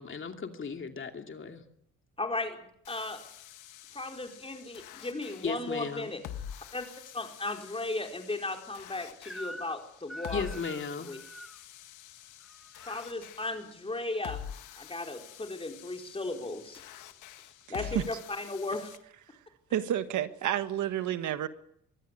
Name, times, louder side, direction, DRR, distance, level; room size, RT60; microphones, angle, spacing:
voice 1, 0.0-1.6 5.4-6.1 10.3-11.1, left 5 dB, 40° left, 2.7 m, -36 dB
voice 2, 2.2-2.6 2.9-3.2 3.9-6.2 6.7-6.9 7.1-10.6 11.0-11.2 12.9-14.4 14.8-16.8 17.7-19.0, left 2 dB, 20° left, 4.7 m, -36 dB
sound 1, 2.8-19.0, left 10 dB, 90° left, 1.9 m, -47 dB
Crying sobbing / Screech, 9.2-9.8 10.1-11.6 12.4-13.1, equal, ahead, 1.5 m, -45 dB
voice 3, 19.7-21.5, right 11 dB, 75° right, 1.6 m, -30 dB
24.0 x 15.0 x 9.7 m
cardioid pair, 90°, 30 cm